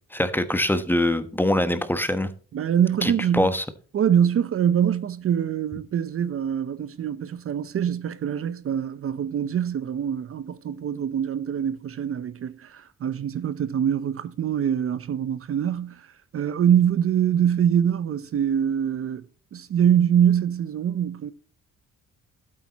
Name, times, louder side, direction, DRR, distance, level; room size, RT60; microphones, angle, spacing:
voice 1, 0.1-2.3 3.0-3.6, left 1 dB, 5° left, 1.1 m, -23 dB
voice 2, 2.5-3.5 3.9-19.2 19.5-21.3, right 9 dB, 50° right, 0.7 m, -24 dB
12.0 x 8.6 x 2.9 m
cardioid pair, 90°, 30 cm